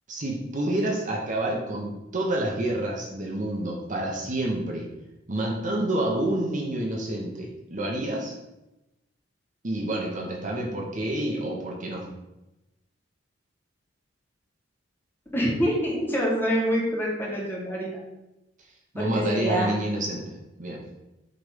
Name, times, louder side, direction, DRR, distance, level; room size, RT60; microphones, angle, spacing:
voice 1, 0.1-4.9 5.3-8.4 9.6-12.1 18.9-20.8, right 1 dB, 40° right, -1 dB, 1.1 m, -28 dB
voice 2, 15.3-18.0 19.0-19.7, equal, 10° left, -5 dB, 1.8 m, -26 dB
7.9 x 3.4 x 5.1 m, 0.94 s
head